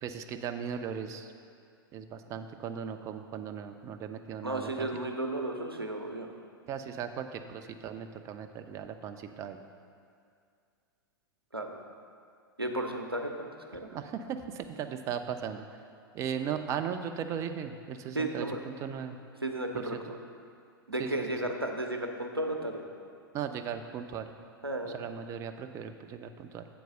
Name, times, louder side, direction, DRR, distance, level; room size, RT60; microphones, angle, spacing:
voice 1, 0.0-1.3 1.9-4.9 6.7-9.6 13.9-15.6 16.1-19.2 19.7-20.0 21.0-21.4 23.3-24.3 24.8-26.7, right 8 dB, 25° right, 7 dB, 0.5 m, -37 dB
voice 2, 4.4-6.3 11.5-11.8 12.6-13.9 18.1-18.6 19.4-20.2 20.9-22.8 24.6-25.0, right 1 dB, 90° right, 2 dB, 0.8 m, -34 dB
7.8 x 4.6 x 6.5 m, 2.3 s
figure-of-eight pair, 100°, 12 cm